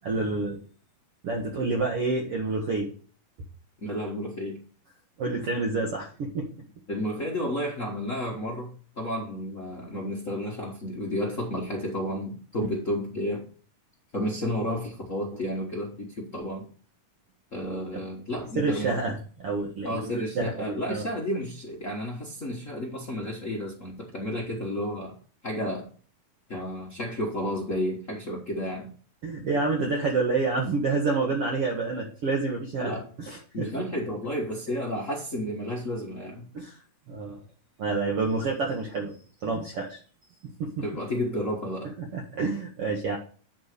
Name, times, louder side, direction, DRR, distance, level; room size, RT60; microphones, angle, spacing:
voice 1, 0.0-0.6 1.2-2.9 5.2-6.5 17.7-18.0 18.6-21.0 29.2-33.7 36.5-36.8 37.1-37.4 37.8-39.1 39.4-40.0 40.6-40.8 42.0-43.2, right 3 dB, 55° right, -1 dB, 1.8 m, -28 dB
voice 2, 3.8-4.6 6.9-13.5 14.1-16.7 17.5-19.0 19.8-25.1 25.4-25.9 26.5-28.9 32.8-33.1 33.5-36.5 40.8-41.9, equal, 75° left, -2 dB, 0.7 m, -31 dB
9.6 x 3.8 x 6.6 m, 0.41 s
omnidirectional pair, 3.8 m